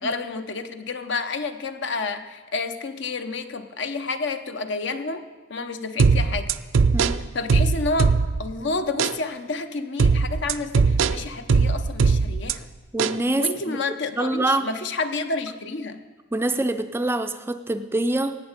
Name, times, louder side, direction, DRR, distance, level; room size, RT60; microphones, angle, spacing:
voice 1, 0.0-5.2 5.5-6.5 7.3-8.1 8.4-12.7 13.4-16.0, left 3 dB, 65° left, 8 dB, 0.8 m, -29 dB
sound 1, 6.0-8.5 9.0-9.2 10.0-12.5 13.0-13.2, right 4 dB, 85° right, 0.5 m, -20 dB
voice 2, 12.9-13.8 14.2-14.7 16.3-18.4, right 2 dB, 10° right, 9 dB, 0.4 m, -25 dB
17.5 x 8.2 x 5.1 m, 1.3 s
head